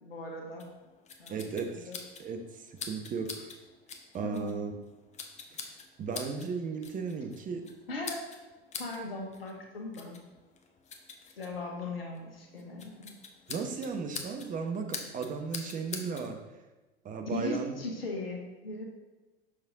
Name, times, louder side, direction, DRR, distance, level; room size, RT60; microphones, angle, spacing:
voice 1, 0.0-0.7 1.2-1.4 1.9-2.0 4.2-4.5 7.9-8.2 8.8-10.2 11.4-13.2 17.2-18.8, left 2 dB, 75° left, 1 dB, 1.4 m, -38 dB
Scissors cut slice, 0.6-16.3, left 5 dB, 25° left, 0.9 m, -46 dB
voice 2, 1.3-1.9 2.2-3.5 4.1-4.7 5.5-5.7 6.0-7.7 13.5-16.4 17.0-17.8, right 5 dB, 25° right, 5 dB, 0.9 m, -35 dB
6.3 x 6.1 x 3.7 m, 1.2 s
figure-of-eight pair, 80°, 29 cm